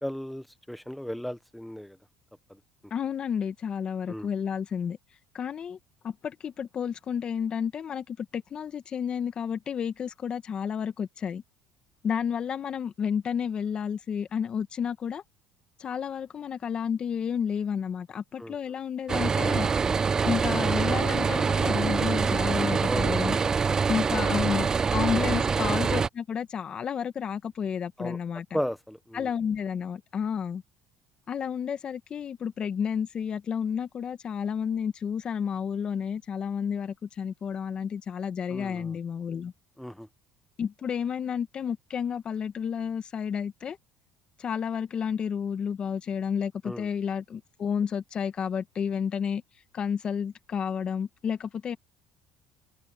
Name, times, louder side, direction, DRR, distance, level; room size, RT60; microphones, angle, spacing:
voice 1, 0.0-2.0 4.1-4.3 18.4-18.6 22.9-24.0 25.1-25.3 28.0-28.2 28.5-29.3 38.5-39.0 39.8-40.1 46.6-46.9, equal, ahead, 1.3 m, -36 dB
voice 2, 2.9-5.0 5.3-5.8 6.0-11.4 12.0-15.2 15.8-19.7 20.2-23.4 23.9-28.4 29.1-30.6 31.3-39.5 40.6-43.8 44.4-49.4 49.7-51.8, left 7 dB, 40° left, 1.6 m, -31 dB
sound 1, 19.1-26.1, right 5 dB, 25° right, 0.4 m, -25 dB
cardioid pair, 115°, 3 cm